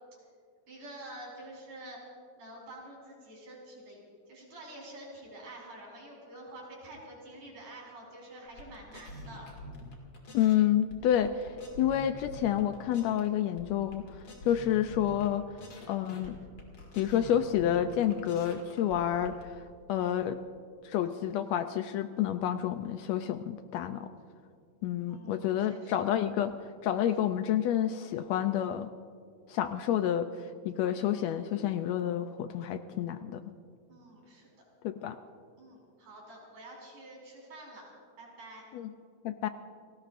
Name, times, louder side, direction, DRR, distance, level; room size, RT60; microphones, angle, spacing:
voice 1, 0.7-2.0 2.4-9.5 16.2-16.3 25.1-26.0 33.9-34.5 35.6-37.9 38.2-38.7, right 1 dB, 85° right, -3 dB, 6.0 m, -48 dB
sound 1, 8.5-10.6 10.9-13.3 13.6-15.3 15.6-19.4, left 1 dB, 40° left, 2.7 m, -47 dB
voice 2, 10.3-11.5 11.8-14.0 14.5-15.4 15.9-16.3 17.0-19.5 19.9-20.4 20.8-24.1 24.8-26.5 26.8-28.9 29.5-30.3 30.6-33.4 34.8-35.2 38.7-38.9 39.2-39.5, left 10 dB, 80° left, 9 dB, 1.6 m, -29 dB
30.0 x 18.0 x 2.5 m, 2.3 s
omnidirectional pair, 3.4 m